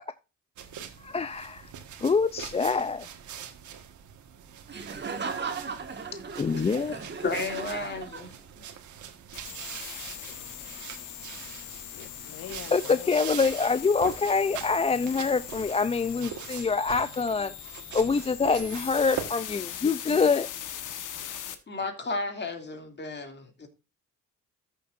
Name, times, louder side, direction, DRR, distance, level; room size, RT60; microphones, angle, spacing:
sound 1, 0.6-19.3, right 8 dB, 75° right, 1.5 m, -43 dB
voice 1, 1.0-1.7 2.0-3.1 6.4-7.0 12.7-17.5 17.9-20.5, left 4 dB, 20° left, 0.4 m, -25 dB
Laughter, 4.7-8.6, right 5 dB, 35° right, 1.7 m, -36 dB
voice 2, 6.9-8.4 21.7-23.7, left 3 dB, 35° left, 2.5 m, -33 dB
sound 2, 9.3-21.5, left 10 dB, 80° left, 1.3 m, -41 dB
voice 3, 10.1-10.5 10.8-11.0 11.9-13.1 13.4-13.5, left 10 dB, 55° left, 0.7 m, -45 dB
14.0 x 6.8 x 2.5 m
cardioid pair, 90°, 30 cm